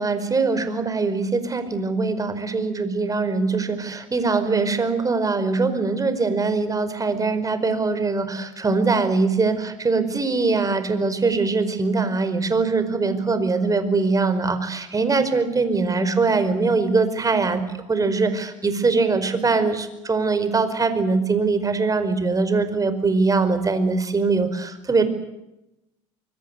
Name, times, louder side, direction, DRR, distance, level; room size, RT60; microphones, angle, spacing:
voice 1, 0.0-17.6 17.9-25.0, right 4 dB, 20° right, 11 dB, 5.0 m, -22 dB
25.0 x 23.5 x 8.1 m, 0.91 s
hypercardioid pair, 80°, 16 cm